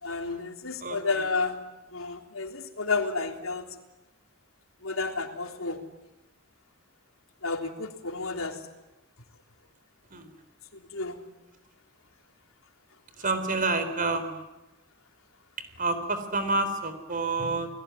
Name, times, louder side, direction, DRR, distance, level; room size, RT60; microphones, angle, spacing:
voice 1, 0.0-1.6 1.9-3.6 4.8-5.8 7.4-8.6 10.7-11.2, left 3 dB, 85° left, 4 dB, 3.4 m, -31 dB
voice 2, 13.2-14.4 15.8-17.7, right 3 dB, 40° right, 10 dB, 4.0 m, -28 dB
29.0 x 20.0 x 9.9 m, 1.0 s
head